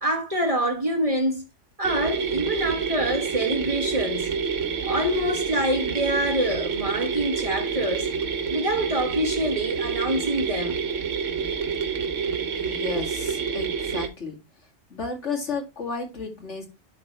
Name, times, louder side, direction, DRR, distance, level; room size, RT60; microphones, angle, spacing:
voice 1, 0.0-1.4 1.8-4.3 4.8-8.1 8.5-10.8, equal, 30° right, 1.5 m, -26 dB
sound 1, 1.8-14.1, right 6 dB, 80° right, 1.3 m, -28 dB
voice 2, 12.6-14.3 14.9-16.7, left 4 dB, 75° left, 2.6 m, -32 dB
11.5 x 4.1 x 3.1 m
omnidirectional pair, 1.2 m